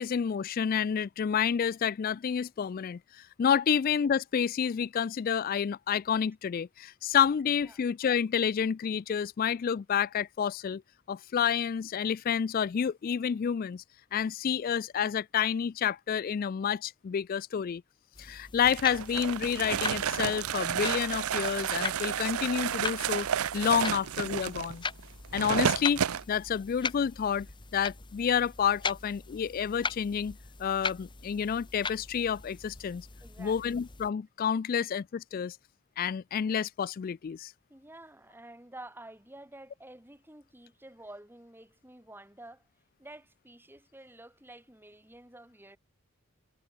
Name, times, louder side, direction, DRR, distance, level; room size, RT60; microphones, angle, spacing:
voice 1, 0.0-10.8 11.1-13.8 14.1-17.8 18.2-23.3 23.5-24.8 25.3-26.0 26.3-27.5 27.7-33.1 33.4-35.6 36.0-37.5, left 7 dB, 40° left, 0.3 m, -29 dB
sound 1, 18.1-34.1, left 4 dB, 20° left, 1.1 m, -40 dB
sound 2, 18.7-26.2, right 8 dB, 85° right, 0.5 m, -31 dB
voice 2, 33.2-33.6 37.7-42.6 43.0-45.8, right 1 dB, 10° right, 2.9 m, -50 dB
head